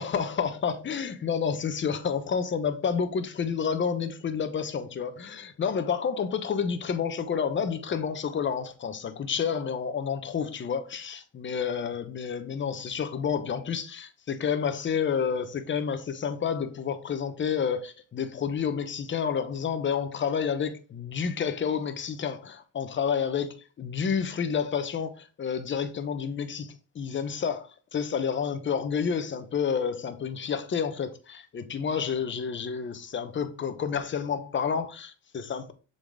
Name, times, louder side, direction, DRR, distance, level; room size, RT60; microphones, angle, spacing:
voice 1, 0.0-35.7, left 7 dB, 40° left, 0.9 m, -30 dB
6.9 x 4.1 x 3.4 m
cardioid pair, 90°, 30 cm